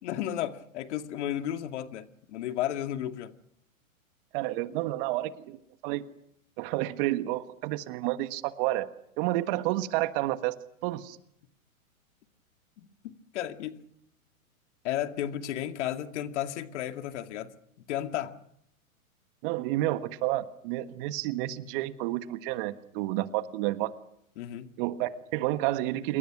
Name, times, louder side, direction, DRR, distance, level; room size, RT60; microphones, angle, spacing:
voice 1, 0.0-3.3 12.8-13.8 14.8-17.5 17.9-18.4 24.4-24.7, left 11 dB, 55° left, 7 dB, 2.2 m, -33 dB
voice 2, 4.3-5.6 5.8-6.0 6.6-8.9 9.2-10.6 10.8-11.2 19.4-23.9 24.8-26.2, right 16 dB, 40° right, 11 dB, 1.5 m, -30 dB
28.0 x 24.0 x 6.1 m, 0.75 s
hypercardioid pair, 125°, 42 cm